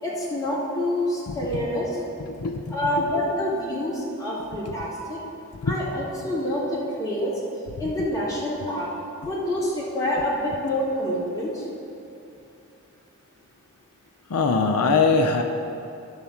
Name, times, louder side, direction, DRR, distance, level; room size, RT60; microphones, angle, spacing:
voice 1, 0.0-1.9 2.7-5.2 5.6-7.3 7.8-8.9 9.2-11.6, left 1 dB, 15° left, -9 dB, 2.3 m, -27 dB
voice 2, 1.3-1.6 2.2-3.1 4.7-4.8 5.6-5.8 7.8-7.9 14.3-15.4, left 4 dB, 90° left, 4 dB, 0.6 m, -23 dB
10.5 x 4.0 x 7.1 m, 2.8 s
head